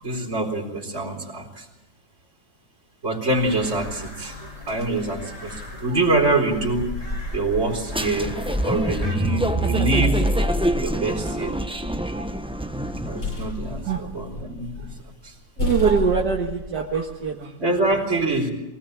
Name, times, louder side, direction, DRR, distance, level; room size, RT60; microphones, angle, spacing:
voice 1, 0.0-1.7 3.0-4.4 4.7-7.0 7.3-10.3 10.8-11.6 13.0-14.9 15.2-15.3 17.6-18.5, right 2 dB, 40° right, 0 dB, 4.5 m, -25 dB
sound 1, 3.3-9.2, left 1 dB, 40° left, 4.1 m, -36 dB
sound 2, 7.9-13.5, right 1 dB, 5° right, 0.8 m, -25 dB
sound 3, 11.8-12.3 12.8-15.0 15.2-15.3 15.6-17.1, left 1 dB, 80° left, 8.7 m, -31 dB
voice 2, 15.6-17.6, right 5 dB, 65° right, 0 dB, 2.2 m, -24 dB
23.5 x 18.5 x 8.8 m, 1.0 s
omnidirectional pair, 2.0 m